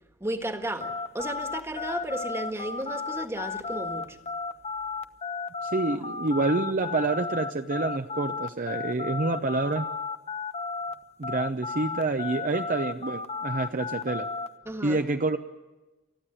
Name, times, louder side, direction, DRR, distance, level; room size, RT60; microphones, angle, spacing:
voice 1, 0.2-4.2 14.6-15.0, right 1 dB, 15° right, 1.6 m, -34 dB
sound 1, 0.8-10.9 11.2-14.5, left 4 dB, 35° left, 0.9 m, -33 dB
voice 2, 5.6-9.9 11.2-14.3 14.8-15.4, right 3 dB, 45° right, 0.7 m, -27 dB
29.5 x 14.0 x 9.0 m
head